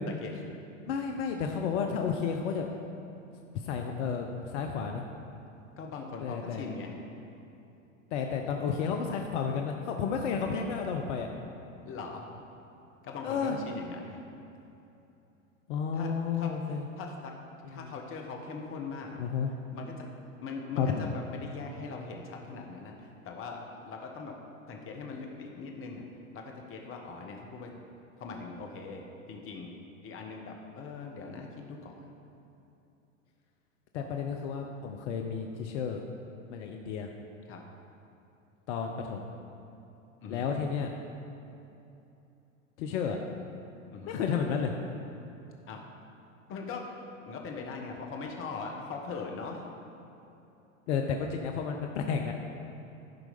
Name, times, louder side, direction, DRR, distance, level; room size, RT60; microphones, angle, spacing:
voice 1, 0.1-0.5 5.8-7.0 11.9-12.3 13.0-14.2 15.9-17.3 17.7-19.2 19.7-20.0 20.4-24.3 24.7-26.0 26.3-27.7 28.2-29.7 30.0-32.1 37.4-37.6 40.2-40.5 43.9-44.2 45.7-45.8 46.5-46.8 47.3-49.6, left 4 dB, 35° left, 1 dB, 1.3 m, -41 dB
voice 2, 0.9-2.7 3.5-5.0 6.2-6.6 8.1-11.3 13.2-13.6 15.7-16.9 17.7-17.9 19.2-19.5 20.8-21.1 33.9-36.0 36.5-37.1 38.7-39.3 40.3-40.9 42.8-43.2 44.1-44.7 50.9-52.3, left 6 dB, 60° left, 3 dB, 0.8 m, -32 dB
12.0 x 4.7 x 5.2 m, 2.8 s
hypercardioid pair, 90°, 39 cm